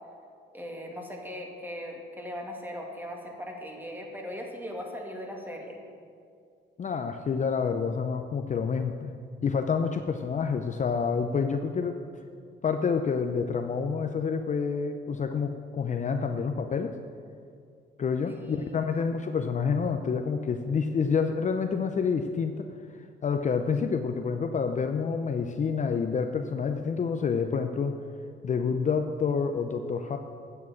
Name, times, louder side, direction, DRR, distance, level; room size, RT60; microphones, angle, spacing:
voice 1, 0.5-5.8 18.3-18.8, equal, 10° right, 0 dB, 2.1 m, -39 dB
voice 2, 6.8-9.1 9.4-12.0 12.6-17.0 18.0-22.7 23.0-28.0 28.4-30.2, left 5 dB, 40° left, 6 dB, 0.6 m, -28 dB
8.5 x 6.9 x 8.5 m, 2.3 s
cardioid pair, 90°, 20 cm